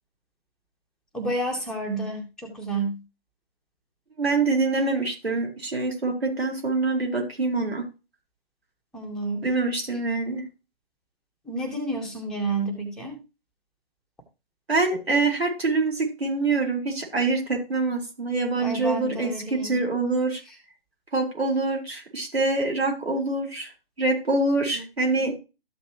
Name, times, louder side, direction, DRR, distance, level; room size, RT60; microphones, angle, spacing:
voice 1, 1.1-3.0 8.9-9.4 11.4-13.2 18.5-19.8 24.7-25.3, right 2 dB, ahead, 0 dB, 1.6 m, -30 dB
voice 2, 4.2-7.9 9.4-10.4 14.7-20.4 21.1-23.7 24.0-25.3, right 3 dB, 75° right, 1 dB, 5.1 m, -25 dB
13.5 x 6.1 x 3.0 m, 0.29 s
figure-of-eight pair, 145°, 31 cm